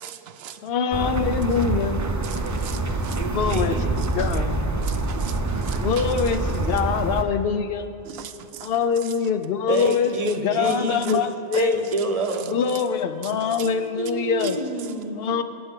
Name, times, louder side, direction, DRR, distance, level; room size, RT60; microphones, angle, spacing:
voice 1, 0.0-0.6 2.3-3.2 4.8-5.3 5.6-5.8 8.1-8.7, right 9 dB, 85° right, 0.8 m, -39 dB
voice 2, 0.6-2.1 3.3-4.6 5.7-7.9 8.6-11.8 12.5-14.6 15.2-15.4, left 6 dB, 70° left, 0.8 m, -24 dB
sound 1, 0.9-7.2, right 3 dB, 25° right, 0.5 m, -26 dB
voice 3, 3.1-4.0 9.7-11.2 11.5-12.6 13.4-15.2, right 2 dB, 40° right, 0.8 m, -28 dB
17.5 x 7.0 x 3.7 m
omnidirectional pair, 1.0 m